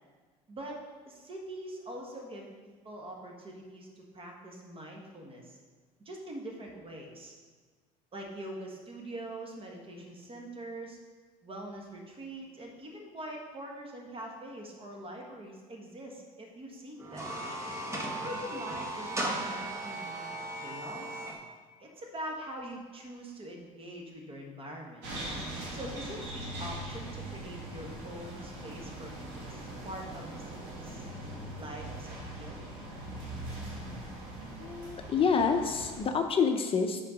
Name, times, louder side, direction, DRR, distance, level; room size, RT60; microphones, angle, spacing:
voice 1, 0.5-0.8 1.1-5.6 6.0-7.3 8.1-11.0 11.4-17.4 18.2-20.3 20.6-21.3 21.8-25.0 25.7-31.1 31.5-32.7, right 1 dB, 35° right, 0 dB, 1.5 m, -43 dB
sound 1, 17.0-21.4, right 1 dB, 20° right, 1.1 m, -36 dB
sound 2, 25.0-36.0, right 1 dB, 85° right, 1.8 m, -41 dB
voice 2, 34.6-37.0, left 5 dB, 35° left, 5 dB, 0.5 m, -27 dB
5.8 x 4.5 x 5.0 m, 1.4 s
supercardioid pair, 90°, 16 cm